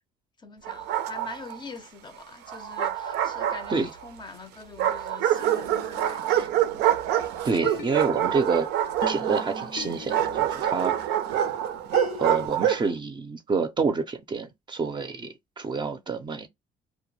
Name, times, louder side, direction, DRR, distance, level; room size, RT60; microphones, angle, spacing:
voice 1, 0.4-6.3, left 4 dB, 25° left, 0.5 m, -43 dB
Bark, 0.7-1.6 2.5-4.1 4.8-12.9, right 11 dB, 85° right, 0.5 m, -26 dB
sound 1, 5.4-7.2 7.6-12.5, left 8 dB, 85° left, 0.7 m, -40 dB
voice 2, 7.4-8.7 9.1-10.9 12.2-16.5, right 4 dB, 25° right, 0.5 m, -28 dB
2.1 x 2.1 x 3.1 m
cardioid pair, 110°, 17 cm